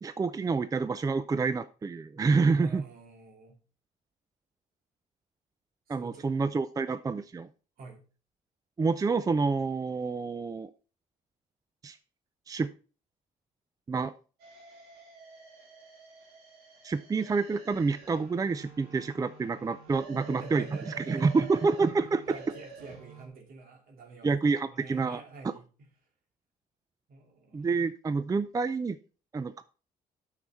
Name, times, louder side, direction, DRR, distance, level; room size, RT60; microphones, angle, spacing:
voice 1, 0.0-2.8 5.9-7.5 8.8-10.7 11.8-12.0 12.5-12.7 13.9-14.1 16.8-20.6 21.0-22.4 24.2-25.2 27.5-29.0 29.3-29.6, right 4 dB, 20° right, 14 dB, 0.5 m, -28 dB
voice 2, 2.6-3.6 5.9-6.3 7.8-8.0 20.1-21.6 22.3-25.9 27.1-27.7, right 3 dB, 65° right, 2 dB, 2.8 m, -47 dB
sound 1, 14.4-23.3, right 4 dB, 80° right, 2.6 m, -49 dB
9.0 x 6.5 x 4.3 m, 0.38 s
supercardioid pair, 75°, 16 cm